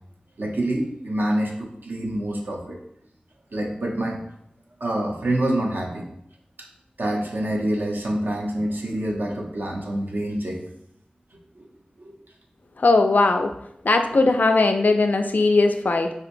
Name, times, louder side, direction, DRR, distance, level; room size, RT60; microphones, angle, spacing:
voice 1, 0.4-2.8 3.5-4.2 4.8-6.1 7.0-10.6 11.6-11.7 12.0-12.1, right 1 dB, 80° right, -1 dB, 0.7 m, -26 dB
voice 2, 12.8-13.5 13.8-16.1, left 3 dB, 65° left, 6 dB, 0.3 m, -19 dB
3.6 x 2.9 x 2.5 m, 0.75 s
wide cardioid pair, 65°, 3 cm